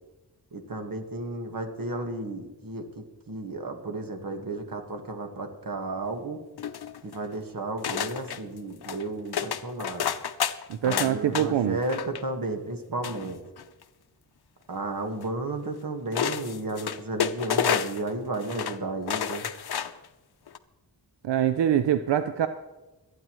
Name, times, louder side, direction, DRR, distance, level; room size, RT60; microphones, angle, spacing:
voice 1, 0.5-6.4 7.0-10.0 10.8-13.4 14.7-19.5, right 2 dB, 55° right, 5 dB, 1.6 m, -33 dB
sound 1, 6.6-7.3 7.8-8.4 8.8-9.0 9.3-11.5 11.8-12.2 13.0-13.8 15.2-15.3 16.1-18.1 18.4-18.8 19.1-20.1 20.5-20.6, left 8 dB, 70° left, 0.7 m, -30 dB
voice 2, 10.7-11.8 21.2-22.5, right 10 dB, 90° right, 10 dB, 0.5 m, -24 dB
27.5 x 9.3 x 3.1 m, 1.1 s
wide cardioid pair, 70°, 41 cm